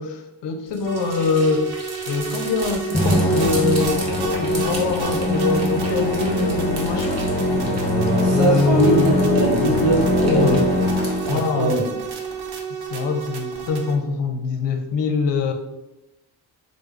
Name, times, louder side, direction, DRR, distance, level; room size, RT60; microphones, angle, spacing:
voice 1, 0.0-1.7 2.1-4.1 4.4-7.5 8.3-10.7 11.3-11.7 12.9-15.5, left 4 dB, 60° left, 5 dB, 0.6 m, -23 dB
sound 1, 0.7-11.3, right 2 dB, 30° right, 1.0 m, -38 dB
sound 2, 0.8-14.0, right 6 dB, 50° right, 0.7 m, -32 dB
Musical instrument, 2.9-11.5, left 1 dB, 15° left, 0.7 m, -22 dB
voice 2, 7.5-10.6 11.3-11.9, right 2 dB, 80° right, -1 dB, 0.9 m, -22 dB
3.3 x 2.1 x 3.2 m, 0.94 s
supercardioid pair, 45°, 49 cm